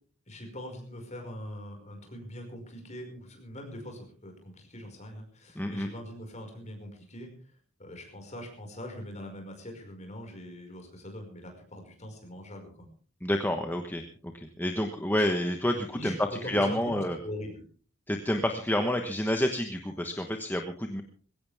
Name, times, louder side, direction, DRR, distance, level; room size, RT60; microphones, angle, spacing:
voice 1, 0.3-7.3 7.8-12.9 15.2-15.3 15.9-16.9 17.2-17.6, equal, 30° left, 3 dB, 5.3 m, -42 dB
voice 2, 5.5-5.9 13.2-16.2 16.4-17.2 18.1-21.0, left 1 dB, 10° left, 5 dB, 1.1 m, -29 dB
21.5 x 16.5 x 3.5 m, 0.42 s
head